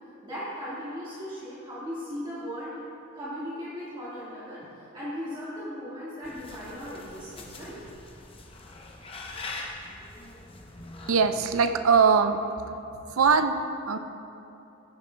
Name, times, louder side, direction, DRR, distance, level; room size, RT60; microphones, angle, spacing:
voice 1, 0.2-2.8 3.1-7.8, equal, 25° right, -11 dB, 1.7 m, -37 dB
sound 1, 6.2-11.3, left 2 dB, 25° left, 0.7 m, -42 dB
voice 2, 11.1-12.4 13.1-13.6 13.9-14.0, right 5 dB, 85° right, 8 dB, 0.5 m, -21 dB
15.0 x 8.3 x 2.2 m, 2.8 s
head